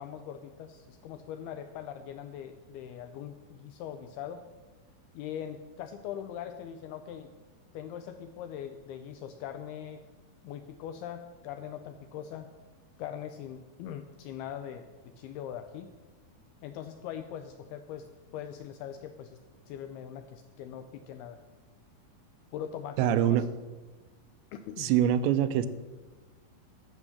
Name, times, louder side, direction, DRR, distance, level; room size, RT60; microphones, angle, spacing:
voice 1, 0.0-4.4 5.1-7.3 7.7-10.0 10.4-12.5 13.0-15.9 16.6-19.4 19.7-21.4 22.5-23.5 24.5-24.9, left 9 dB, 85° left, 8 dB, 2.3 m, -41 dB
voice 2, 23.0-23.4 24.8-25.7, right 10 dB, 85° right, 12 dB, 2.8 m, -24 dB
12.0 x 7.6 x 6.4 m, 1.3 s
omnidirectional pair, 5.0 m